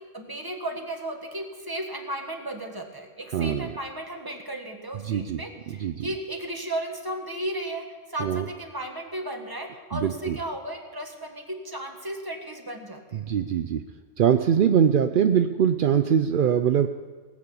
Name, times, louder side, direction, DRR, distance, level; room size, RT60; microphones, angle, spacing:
voice 1, 0.1-13.2, right 1 dB, 15° right, 3 dB, 1.6 m, -35 dB
voice 2, 3.3-3.7 5.0-5.4 5.8-6.1 8.2-8.5 9.9-10.4 13.1-13.8 14.2-16.9, right 8 dB, 60° right, 8 dB, 0.5 m, -22 dB
19.0 x 8.6 x 7.0 m, 1.4 s
omnidirectional pair, 1.4 m